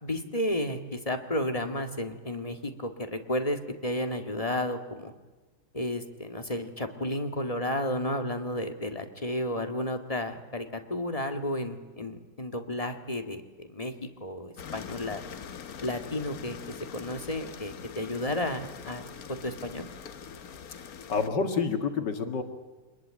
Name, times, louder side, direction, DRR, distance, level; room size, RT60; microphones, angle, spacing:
voice 1, 0.0-5.1 5.7-15.2 15.8-16.6 16.9-19.9, left 1 dB, 20° left, 6 dB, 1.8 m, -32 dB
sound 1, 14.6-21.3, left 7 dB, 60° left, 1.5 m, -43 dB
voice 2, 20.7-22.4, left 5 dB, 75° left, 7 dB, 2.4 m, -29 dB
25.5 x 20.5 x 8.9 m, 1.3 s
omnidirectional pair, 1.9 m